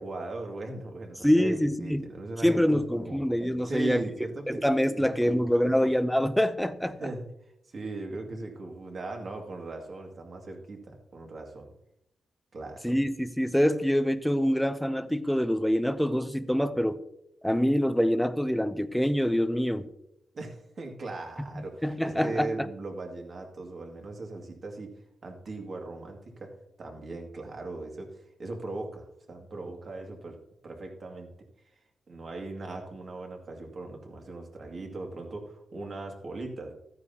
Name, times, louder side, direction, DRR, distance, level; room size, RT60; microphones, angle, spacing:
voice 1, 0.0-3.2 3.6-4.6 5.0-5.8 7.0-7.2 7.7-11.7 12.5-13.0 20.3-26.5 26.8-30.4 30.6-31.3 32.1-36.7, right 2 dB, 45° right, 2 dB, 2.2 m, -39 dB
voice 2, 1.2-2.1 2.4-4.0 4.5-7.0 12.8-17.0 17.4-19.9 21.6-22.5, equal, ahead, 11 dB, 0.6 m, -25 dB
14.0 x 9.5 x 2.8 m, 0.78 s
cardioid pair, 120°, 0 cm